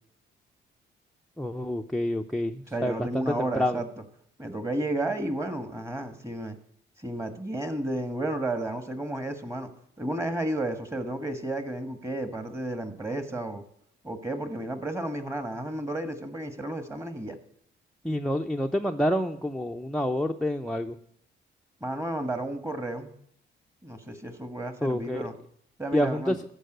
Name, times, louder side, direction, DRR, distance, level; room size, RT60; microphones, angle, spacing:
voice 1, 1.4-3.8 18.0-21.0 24.8-25.3 25.9-26.4, equal, ahead, 6 dB, 0.5 m, -28 dB
voice 2, 2.7-3.9 4.4-6.6 7.0-9.7 10.0-13.6 14.0-17.4 21.8-23.1 23.8-25.3 25.8-26.4, right 1 dB, 15° right, 8 dB, 1.5 m, -32 dB
13.5 x 4.7 x 7.9 m, 0.69 s
cardioid pair, 90°, 20 cm